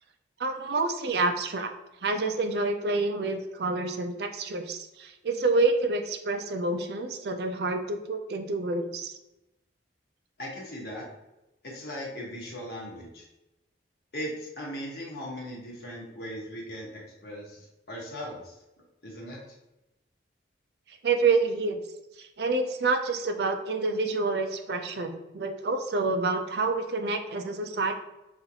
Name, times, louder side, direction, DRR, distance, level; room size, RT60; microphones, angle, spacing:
voice 1, 0.4-1.7 2.0-9.1 20.9-21.8 22.2-27.9, right 3 dB, 60° right, 6 dB, 0.4 m, -28 dB
voice 2, 10.4-11.0 11.6-13.3 14.1-18.6 19.0-19.6, equal, 55° left, -3 dB, 1.3 m, -38 dB
5.4 x 2.5 x 2.8 m, 0.95 s
head